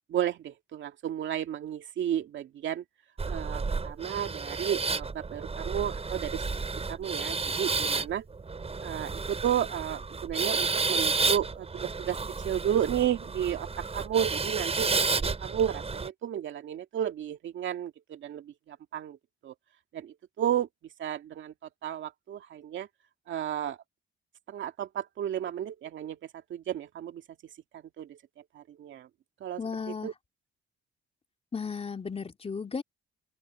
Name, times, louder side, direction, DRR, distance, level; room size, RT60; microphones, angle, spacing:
voice 1, 0.1-2.8 3.2-6.4 6.9-8.3 8.8-12.2 12.4-13.7 13.9-19.2 19.4-19.5 19.9-20.7 21.0-21.5 21.8-22.9 23.3-23.8 24.5-26.2 26.5-27.2 27.7-28.2 28.5-29.1 29.4-29.6 30.0-30.1, right 10 dB, 70° right, 2.5 m, -32 dB
sound 1, 3.2-16.1, right 4 dB, 30° right, 7.1 m, -31 dB
voice 2, 29.6-30.1 31.5-32.8, left 5 dB, 30° left, 3.1 m, -35 dB
open air
cardioid pair, 90°, 20 cm